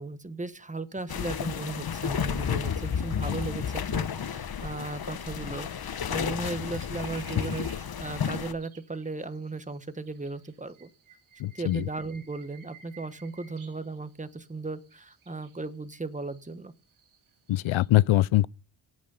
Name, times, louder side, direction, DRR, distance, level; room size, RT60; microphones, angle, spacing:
voice 1, 0.0-10.9 11.5-16.7, right 3 dB, 15° right, 1.2 m, -36 dB
sound 1, 0.9-17.9, right 6 dB, 85° right, 2.9 m, -58 dB
sound 2, 1.1-8.5, left 7 dB, 50° left, 1.1 m, -31 dB
voice 2, 11.4-11.8 17.5-18.5, left 16 dB, 80° left, 0.6 m, -22 dB
17.0 x 6.3 x 5.5 m
cardioid pair, 80°, 48 cm